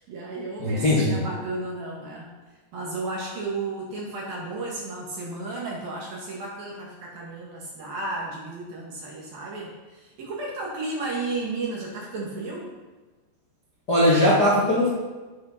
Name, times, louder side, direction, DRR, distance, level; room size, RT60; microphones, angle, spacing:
voice 1, 0.0-2.3 2.7-12.7, right 2 dB, 55° right, -3 dB, 3.3 m, -33 dB
voice 2, 0.6-1.2 13.9-14.9, left 1 dB, 35° left, -7 dB, 1.7 m, -19 dB
9.6 x 9.2 x 6.0 m, 1.2 s
omnidirectional pair, 5.8 m